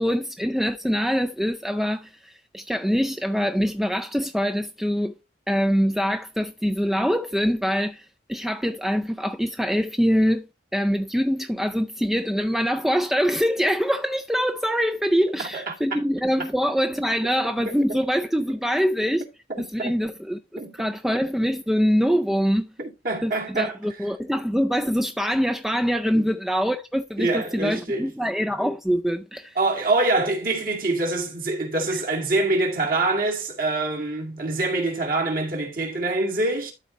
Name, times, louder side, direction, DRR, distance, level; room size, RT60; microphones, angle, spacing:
voice 1, 0.0-5.2 5.5-10.5 10.7-19.3 19.6-22.7 23.2-29.6 31.9-32.0, equal, ahead, 0.4 m, -24 dB
voice 2, 22.8-23.8 26.1-26.3 27.2-28.1 29.6-36.7, right 2 dB, 50° right, 2.4 m, -25 dB
12.0 x 4.3 x 3.9 m
head